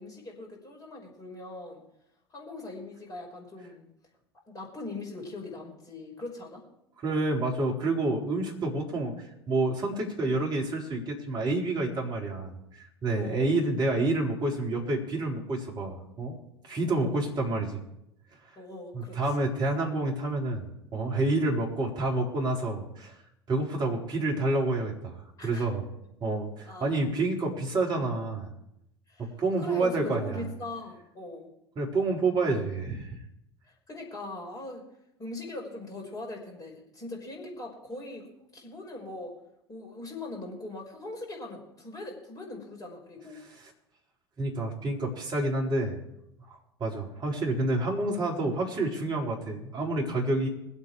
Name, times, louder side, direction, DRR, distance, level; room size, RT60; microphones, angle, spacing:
voice 1, 0.0-1.8 2.3-3.9 4.5-6.6 13.1-13.5 16.8-17.1 18.6-19.5 25.4-25.7 26.6-27.1 29.1-31.5 33.6-34.8 35.2-39.4 39.7-43.4, left 2 dB, 25° left, 0 dB, 5.7 m, -41 dB
voice 2, 7.0-9.1 9.5-16.4 16.6-17.8 18.9-20.7 20.9-23.2 23.5-25.8 26.2-28.5 29.4-30.4 31.8-33.1 44.4-46.0 46.5-50.5, right 2 dB, 30° right, -2 dB, 4.2 m, -28 dB
22.0 x 8.5 x 4.8 m, 0.81 s
figure-of-eight pair, 75°, 13 cm